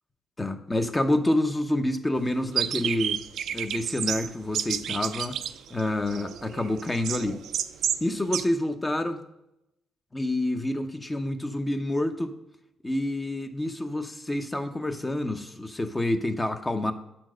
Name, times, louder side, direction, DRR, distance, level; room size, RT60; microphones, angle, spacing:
voice 1, 0.4-3.2 3.5-5.4 5.7-7.4 8.0-9.2 10.1-12.3 12.8-16.9, left 1 dB, 15° left, 7 dB, 0.8 m, -28 dB
sound 1, 2.6-8.1 8.3-8.4, right 9 dB, 75° right, 0.4 m, -31 dB
8.3 x 4.5 x 6.2 m, 0.85 s
cardioid pair, 90°, 0 cm